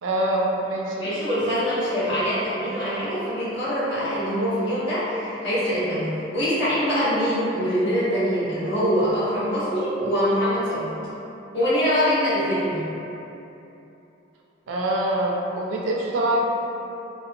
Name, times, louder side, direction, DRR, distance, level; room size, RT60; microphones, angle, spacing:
voice 1, 0.0-1.1 14.7-16.4, right 1 dB, 75° right, -2 dB, 0.4 m, -24 dB
voice 2, 1.0-10.9 11.5-12.8, equal, 60° left, -13 dB, 1.1 m, -24 dB
2.8 x 2.0 x 2.5 m, 2.9 s
head